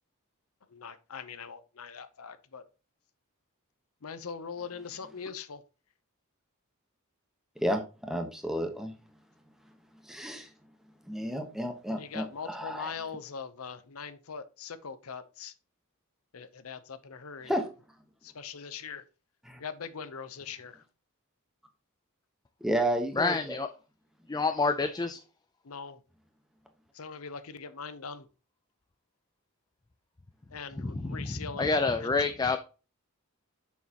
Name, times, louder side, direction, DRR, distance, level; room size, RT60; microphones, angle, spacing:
voice 1, 0.7-2.6 4.0-5.6 11.9-15.5 16.3-17.5 18.2-19.0 19.6-20.8 25.6-26.0 26.9-28.3 30.5-31.7 32.0-32.4, left 6 dB, 80° left, 13 dB, 0.7 m, -41 dB
voice 2, 8.1-8.9 10.1-10.5 11.1-12.9 17.5-17.6 19.5-19.6 22.6-23.6, equal, ahead, 5 dB, 1.1 m, -31 dB
voice 3, 23.1-23.7 24.3-25.2 30.8-32.6, left 3 dB, 20° left, 8 dB, 0.4 m, -28 dB
7.0 x 6.5 x 2.9 m, 0.33 s
head